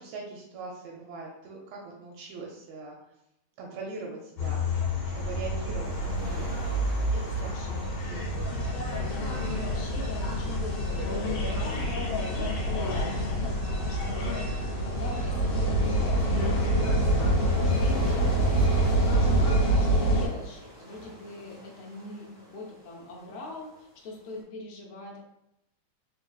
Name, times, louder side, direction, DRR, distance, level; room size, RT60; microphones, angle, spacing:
voice 1, 0.0-3.0 3.6-4.6 5.1-5.9 6.2-6.6 7.1-7.5 8.0-8.3 17.4-17.8, right 3 dB, 80° right, -1 dB, 1.5 m, -41 dB
sound 1, 4.4-20.3, right 1 dB, 60° left, 1.8 m, -26 dB
sound 2, 5.0-24.4, equal, 40° left, 0.7 m, -46 dB
voice 2, 7.4-7.9 8.9-25.2, left 2 dB, 80° left, -2 dB, 1.1 m, -43 dB
4.8 x 2.8 x 2.3 m, 0.86 s
omnidirectional pair, 3.4 m